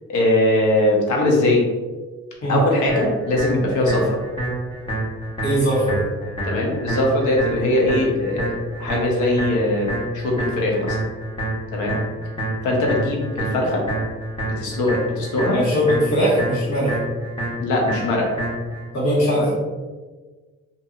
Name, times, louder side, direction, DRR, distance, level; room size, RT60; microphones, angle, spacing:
voice 1, 0.1-1.6 2.5-4.2 6.5-11.0 11.7-12.0 12.6-13.8 14.4-15.6 17.6-18.3 19.3-19.5, left 1 dB, 85° left, -1 dB, 0.8 m, -21 dB
sound 1, 2.9-18.9, right 1 dB, 15° left, 1.1 m, -28 dB
voice 2, 5.4-6.0 15.5-17.0 18.9-19.5, equal, 65° left, -7 dB, 1.4 m, -20 dB
2.7 x 2.7 x 2.4 m, 1.3 s
cardioid pair, 90°, 30 cm